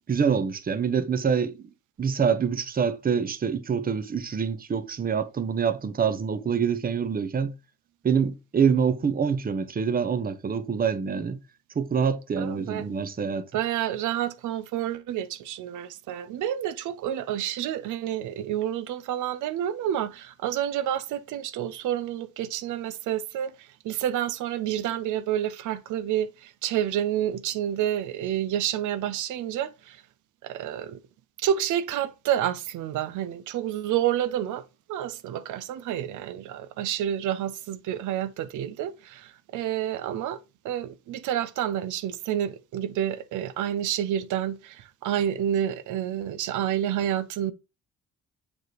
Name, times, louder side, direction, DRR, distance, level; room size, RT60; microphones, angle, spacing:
voice 1, 0.1-1.7 2.0-7.5 8.0-11.4 11.7-13.4, right 6 dB, 30° right, 0.8 m, -26 dB
voice 2, 12.4-12.8 13.5-30.0 30.4-31.0 31.4-34.6 34.9-40.4 40.6-47.5, right 11 dB, 80° right, 0.6 m, -29 dB
7.3 x 3.2 x 4.6 m
cardioid pair, 90°, 30 cm